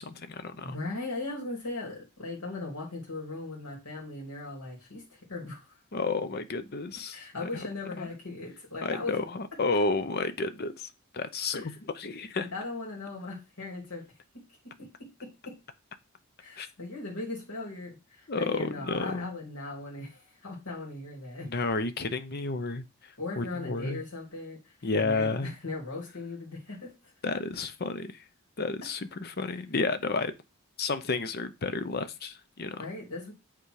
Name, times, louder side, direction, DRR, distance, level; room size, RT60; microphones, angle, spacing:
voice 1, 0.0-0.8 5.9-7.6 8.0-8.1 8.8-12.5 16.6-16.7 18.3-19.4 21.4-24.0 24.8-25.5 27.2-28.2 28.6-30.3 30.8-32.9, left 3 dB, 45° left, 0.7 m, -31 dB
voice 2, 0.6-5.8 7.1-9.2 11.5-11.7 12.4-14.1 14.8-14.9 15.2-15.6 16.4-21.5 23.2-26.9 32.8-33.3, left 2 dB, 90° left, 2.8 m, -38 dB
8.2 x 3.8 x 4.7 m
head